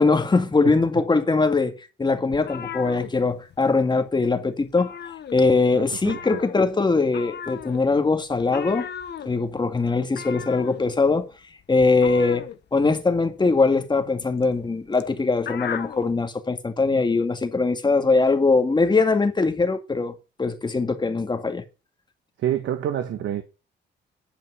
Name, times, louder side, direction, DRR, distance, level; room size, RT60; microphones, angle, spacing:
voice 1, 0.0-4.9 5.3-8.9 9.3-11.3 11.7-12.4 12.7-21.6, left 3 dB, 20° left, 2.0 m, -21 dB
sound 1, 2.3-4.3 4.6-5.7 6.0-16.1, left 8 dB, 60° left, 1.3 m, -37 dB
voice 2, 5.7-6.2 22.4-23.4, right 10 dB, 75° right, 1.4 m, -27 dB
10.5 x 5.5 x 5.6 m
cardioid pair, 90°, 20 cm